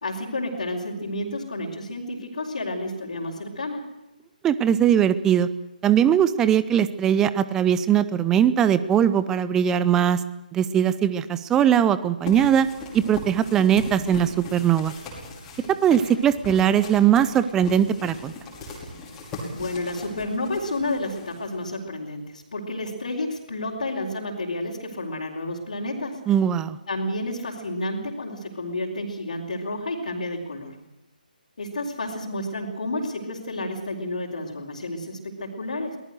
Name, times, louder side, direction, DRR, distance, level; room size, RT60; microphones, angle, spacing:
voice 1, 0.0-3.9 19.5-26.2 26.9-30.7 31.6-36.0, left 1 dB, 50° left, -4 dB, 4.5 m, -30 dB
voice 2, 4.4-5.5 5.8-10.2 10.5-12.7 12.9-14.9 15.8-18.3 26.3-26.8, right 9 dB, 10° right, 14 dB, 0.7 m, -20 dB
sound 1, 12.3-21.8, left 2 dB, 10° left, 5.5 m, -39 dB
24.5 x 19.0 x 6.5 m, 1.0 s
figure-of-eight pair, 145°, 5 cm